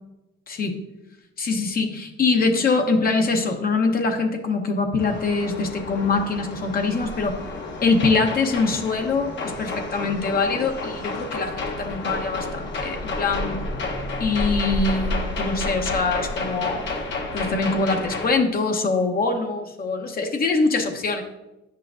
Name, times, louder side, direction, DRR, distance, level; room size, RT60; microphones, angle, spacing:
voice 1, 0.5-0.8 1.4-7.4 7.8-13.6 14.2-16.8 17.3-21.2, left 3 dB, 50° left, 4 dB, 0.9 m, -23 dB
sound 1, 5.0-18.3, left 2 dB, 65° left, 1.2 m, -30 dB
8.9 x 5.7 x 2.5 m, 0.99 s
cardioid pair, 90°, 20 cm